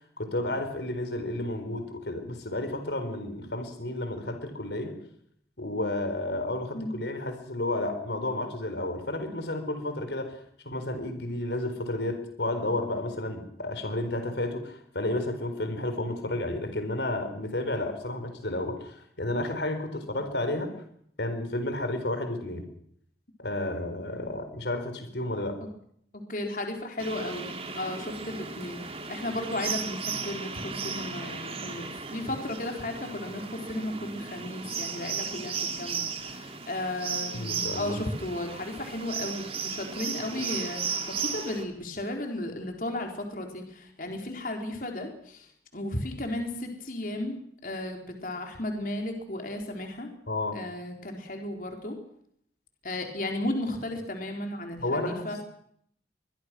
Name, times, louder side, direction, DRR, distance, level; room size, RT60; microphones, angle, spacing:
voice 1, 0.2-5.0 5.6-20.7 21.2-22.6 23.4-25.6 37.3-38.0 50.3-50.6 54.8-55.4, left 1 dB, 80° left, 7 dB, 4.4 m, -32 dB
voice 2, 26.1-50.1 50.5-52.0 52.8-55.4, left 1 dB, 50° left, 3 dB, 4.2 m, -34 dB
sound 1, 27.0-41.6, right 5 dB, 35° right, 3.0 m, -35 dB
24.5 x 22.5 x 6.2 m, 0.67 s
head